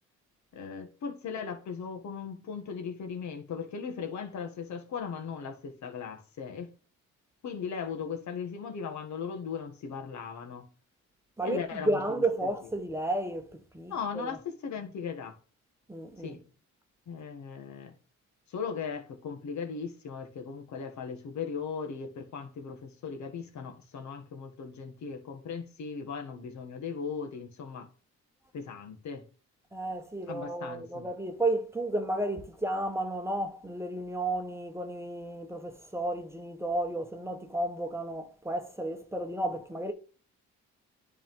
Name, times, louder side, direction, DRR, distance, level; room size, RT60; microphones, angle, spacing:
voice 1, 0.5-6.7 7.4-10.7 11.4-12.0 12.4-12.5 13.9-15.4 16.2-16.4 17.1-17.9 18.5-27.9 28.5-29.2 30.3-31.1, left 6 dB, 70° left, 1.5 m, -38 dB
voice 2, 11.4-14.4 15.9-16.4 29.7-39.9, right 1 dB, 10° right, 0.9 m, -32 dB
10.0 x 3.7 x 3.6 m
cardioid pair, 90°, 30 cm